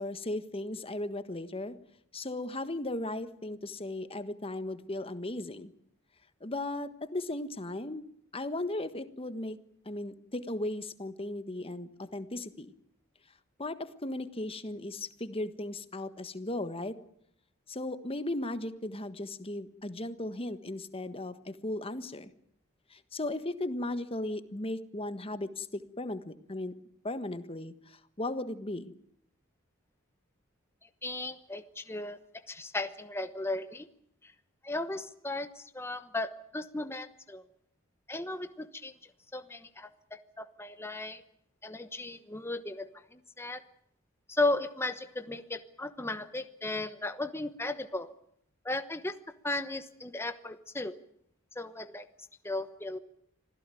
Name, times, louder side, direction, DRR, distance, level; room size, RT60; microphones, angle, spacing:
voice 1, 0.0-1.8 2.1-5.7 6.4-8.1 8.3-9.6 9.8-12.7 13.6-17.0 17.7-22.3 22.9-26.7 27.0-28.9, left 1 dB, 25° left, 11 dB, 1.5 m, -36 dB
voice 2, 31.0-32.2 32.5-33.9 34.2-34.3 34.6-37.4 38.1-41.2 41.6-43.6 44.3-48.1 48.6-49.2 49.4-51.0 51.5-52.1 52.4-53.0, left 2 dB, 10° left, 9 dB, 1.1 m, -36 dB
26.5 x 16.0 x 9.2 m, 0.71 s
head